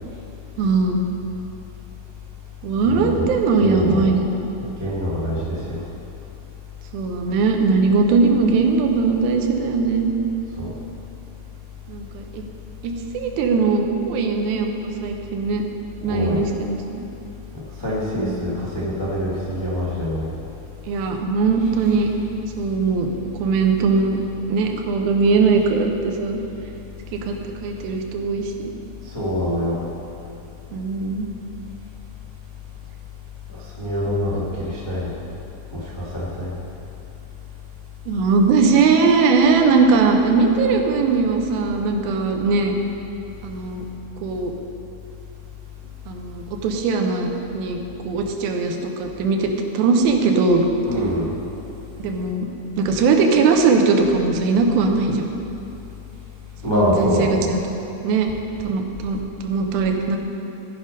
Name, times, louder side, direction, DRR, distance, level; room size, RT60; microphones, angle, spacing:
voice 1, 0.6-1.1 2.6-4.3 6.9-10.1 11.9-12.4 12.8-15.6 16.0-17.0 18.1-18.8 20.9-22.1 22.6-23.1 23.4-24.2 24.5-26.4 27.1-27.3 27.6-28.7 30.7-31.3 38.1-42.7 43.4-43.9 44.2-44.5 46.1-50.6 52.0-52.5 52.8-55.4 56.7-57.6 58.0-58.3 58.6-60.2, right 4 dB, 85° right, 3 dB, 2.7 m, -20 dB
voice 2, 2.8-3.3 3.5-4.1 4.6-5.8 10.6-10.7 16.0-16.5 17.8-20.3 29.0-29.8 33.5-35.2 35.7-36.6 50.8-51.3 56.6-57.6, equal, 30° left, -8 dB, 0.4 m, -25 dB
15.0 x 5.2 x 5.2 m, 2.9 s
omnidirectional pair, 4.2 m